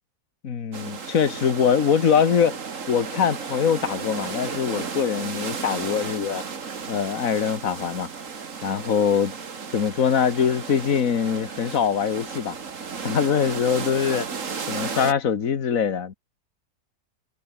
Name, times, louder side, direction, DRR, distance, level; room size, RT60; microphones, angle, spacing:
voice 1, 0.4-2.6 2.9-6.4 6.9-8.1 8.6-9.3 9.7-12.6 13.0-14.3 14.7-16.1, left 7 dB, 55° left, 1.8 m, -23 dB
sound 1, 0.7-15.1, right 5 dB, 50° right, 2.1 m, -34 dB
omnidirectional pair, 1.7 m